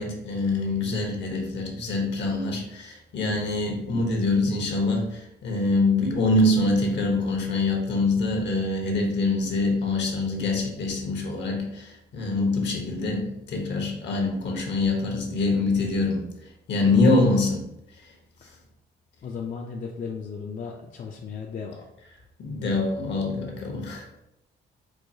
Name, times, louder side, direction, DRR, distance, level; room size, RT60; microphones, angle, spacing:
voice 1, 0.0-16.2 16.7-17.6 22.4-24.0, left 2 dB, 65° left, 2 dB, 1.0 m, -25 dB
voice 2, 16.8-17.2 18.4-18.5 19.2-21.9, left 5 dB, 40° left, 1 dB, 0.4 m, -35 dB
4.6 x 2.2 x 2.7 m, 0.84 s
cardioid pair, 90°, 20 cm